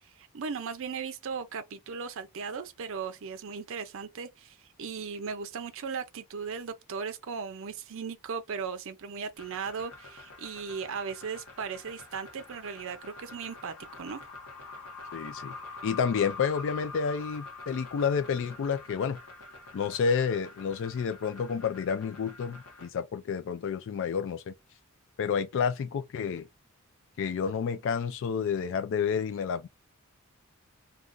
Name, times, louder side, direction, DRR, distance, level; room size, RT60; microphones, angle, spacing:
voice 1, 0.2-14.2, right 5 dB, 60° right, 0.5 m, -37 dB
sound 1, 9.4-22.9, left 3 dB, 80° left, 0.9 m, -46 dB
voice 2, 15.1-15.5 15.8-19.2 19.7-24.5 25.2-26.5 27.2-29.7, left 6 dB, 55° left, 0.3 m, -30 dB
2.5 x 2.3 x 3.6 m
head